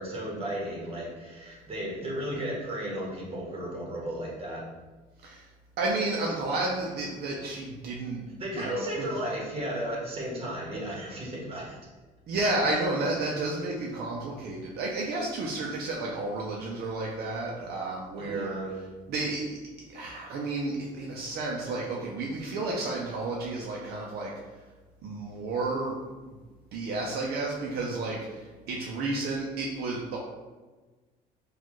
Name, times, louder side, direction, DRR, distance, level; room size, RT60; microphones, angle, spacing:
voice 1, 0.0-4.7 8.4-11.8 18.2-18.7, right 1 dB, 35° right, -4 dB, 1.4 m, -34 dB
voice 2, 5.8-8.3 8.5-9.1 12.3-18.6 19.1-19.6 19.9-24.3 25.0-26.0 26.3-26.4 26.7-30.2, right 2 dB, 70° right, -2 dB, 0.6 m, -31 dB
4.2 x 2.4 x 3.0 m, 1.3 s
cardioid pair, 110°, 17 cm